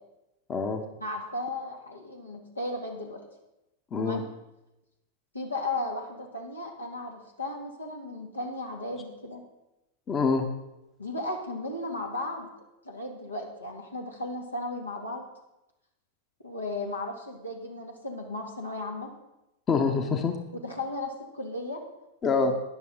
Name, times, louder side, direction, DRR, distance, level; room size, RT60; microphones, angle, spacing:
voice 1, 0.5-0.8 3.9-4.2 10.1-10.5 19.7-20.4 22.2-22.6, left 4 dB, 25° left, 6 dB, 1.0 m, -25 dB
voice 2, 1.0-3.2 4.0-4.2 5.3-9.4 11.0-12.5 12.8-15.2 16.4-19.1 20.6-21.8 22.3-22.5, left 2 dB, 80° left, 1 dB, 2.0 m, -35 dB
13.5 x 10.5 x 3.9 m, 0.94 s
figure-of-eight pair, 90°, 0 cm